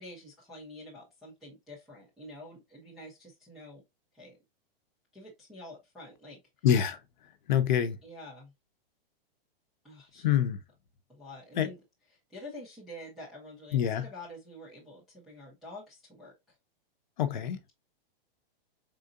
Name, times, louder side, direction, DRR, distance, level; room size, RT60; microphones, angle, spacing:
voice 1, 0.0-3.8 4.1-4.4 5.1-6.4 8.0-8.5 9.8-10.3 11.1-11.8 12.3-16.3, left 1 dB, ahead, 0.4 m, -47 dB
voice 2, 6.6-7.0 7.5-8.0 10.2-10.6 11.6-11.7 13.7-14.1 17.2-17.6, left 9 dB, 50° left, 0.8 m, -26 dB
4.8 x 3.8 x 2.5 m
supercardioid pair, 170°, 30 cm